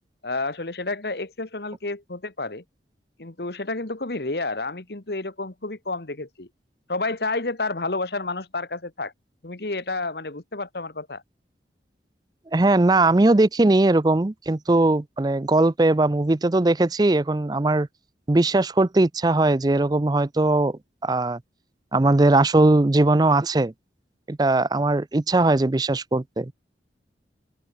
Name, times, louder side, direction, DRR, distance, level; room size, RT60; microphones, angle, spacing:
voice 1, 0.2-2.6 3.2-6.5 6.9-9.1 9.4-11.2, left 3 dB, 60° left, 1.5 m, -30 dB
voice 2, 12.5-17.9 18.3-21.4 21.9-23.7 24.3-26.5, right 2 dB, 20° right, 0.5 m, -20 dB
open air
head